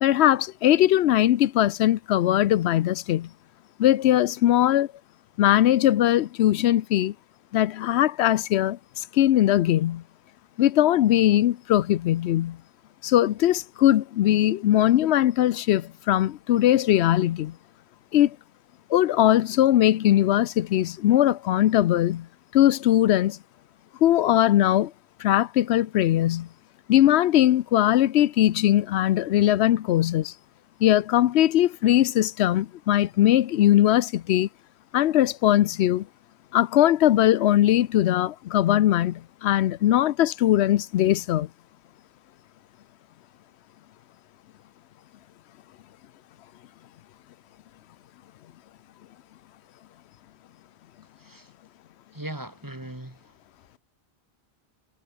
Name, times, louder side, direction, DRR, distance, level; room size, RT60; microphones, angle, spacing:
voice 1, 0.0-3.3 3.8-4.9 5.4-7.1 7.5-10.0 10.6-12.6 13.0-17.6 18.1-18.4 18.9-22.3 22.5-23.4 24.0-24.9 25.2-26.5 26.9-30.3 30.8-34.5 34.9-36.1 36.5-41.5, left 12 dB, 90° left, 0.9 m, -20 dB
voice 2, 51.2-51.5 52.1-53.2, right 1 dB, 20° right, 2.2 m, -38 dB
omnidirectional pair, 1.1 m